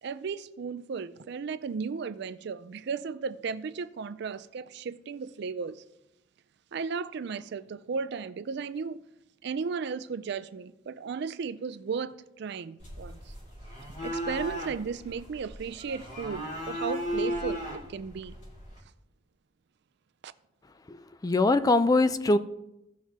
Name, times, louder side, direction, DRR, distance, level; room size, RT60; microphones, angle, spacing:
voice 1, 0.0-5.8 6.7-9.0 9.4-13.3 14.0-18.4 20.2-20.3, right 5 dB, 60° right, 0.4 m, -35 dB
sound 1, 12.8-18.8, equal, 40° left, 2.4 m, -36 dB
voice 2, 21.2-22.4, left 2 dB, 20° left, 0.3 m, -22 dB
16.0 x 5.9 x 2.8 m
head